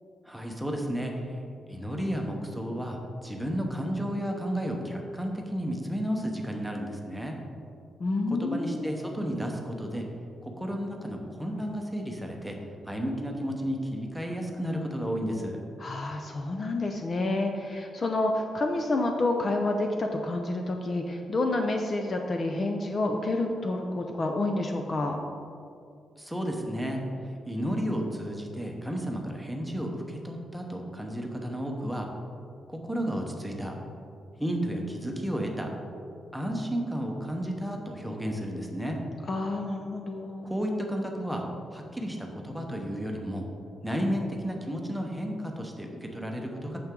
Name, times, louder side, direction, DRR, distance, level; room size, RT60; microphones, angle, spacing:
voice 1, 0.3-1.4 1.7-7.4 8.3-10.0 10.4-12.6 12.8-15.6 26.2-27.1 27.5-32.1 32.7-33.7 34.4-35.7 36.3-39.0 40.4-41.5 41.7-43.5 43.8-46.8, equal, ahead, 1 dB, 0.9 m, -32 dB
voice 2, 8.0-9.2 15.8-25.2 39.3-40.5, left 2 dB, 35° left, 3 dB, 0.5 m, -29 dB
8.7 x 6.8 x 3.8 m, 2.5 s
wide cardioid pair, 150°, 0 cm